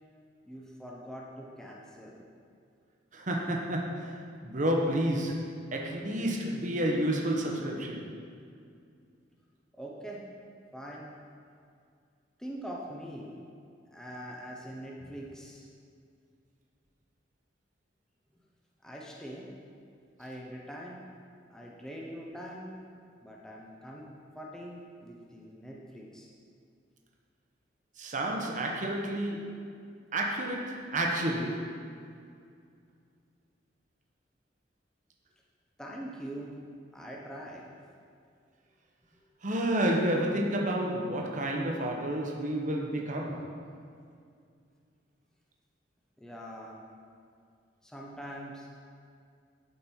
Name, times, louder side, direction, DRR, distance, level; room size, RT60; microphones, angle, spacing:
voice 1, 0.4-2.2 9.7-10.3 10.7-11.1 12.4-13.4 13.9-15.7 18.8-19.5 20.2-21.0 21.5-22.7 23.2-26.3 35.8-36.6 36.9-37.7 46.2-46.8 47.8-48.7, equal, 5° left, -3 dB, 0.8 m, -43 dB
voice 2, 3.1-8.2 28.0-29.6 30.1-31.8 39.4-43.6, right 1 dB, 45° right, 0 dB, 1.1 m, -30 dB
12.0 x 5.3 x 4.4 m, 2.3 s
head